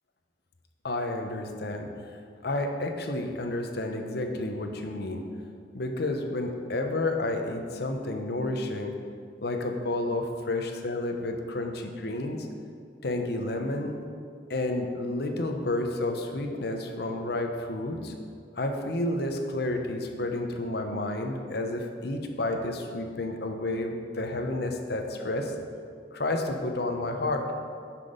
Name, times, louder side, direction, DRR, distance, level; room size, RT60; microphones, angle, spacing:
voice 1, 0.8-5.2 5.7-8.9 9.4-12.5 13.0-14.0 14.5-18.1 18.6-25.5 26.1-27.5, left 2 dB, 65° left, 4 dB, 0.9 m, -30 dB
9.8 x 6.0 x 5.2 m, 2.3 s
head